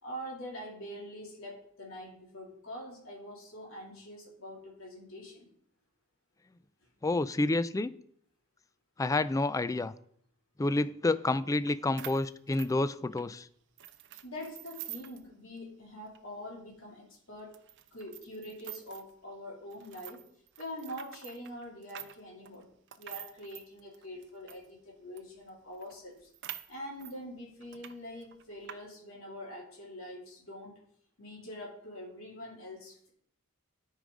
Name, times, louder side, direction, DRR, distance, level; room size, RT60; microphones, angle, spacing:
voice 1, 0.0-5.5 14.2-17.6 17.9-20.2 20.6-22.7 23.0-26.3 26.7-30.8 31.2-33.1, equal, 70° left, -2 dB, 2.7 m, -44 dB
voice 2, 7.0-7.9 9.0-9.9 10.6-13.5, left 2 dB, 15° left, 15 dB, 0.3 m, -29 dB
sound 1, 11.7-11.8 12.0-13.3 13.8-15.3 15.6-15.7 16.1-16.2 16.8-16.9 17.5-19.1 19.7-24.7 25.2-25.3 25.5-25.6 25.8-27.2 27.6-27.9 28.2-28.8, right 12 dB, 60° right, 0.6 m, -47 dB
13.0 x 4.8 x 5.2 m, 0.66 s
head